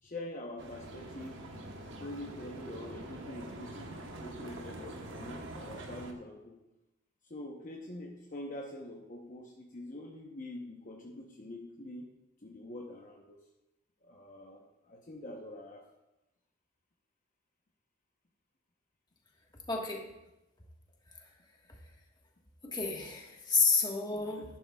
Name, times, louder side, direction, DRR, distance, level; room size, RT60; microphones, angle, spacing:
voice 1, 0.0-1.5 2.0-6.6 7.2-12.1 12.4-13.4 14.0-15.9, left 1 dB, 45° left, 0 dB, 0.9 m, -45 dB
sound 1, 0.6-6.1, right 1 dB, 75° right, 1.1 m, -45 dB
voice 2, 19.7-20.0 22.6-24.4, left 4 dB, 20° left, 0 dB, 1.4 m, -30 dB
11.0 x 10.5 x 2.3 m, 0.96 s
head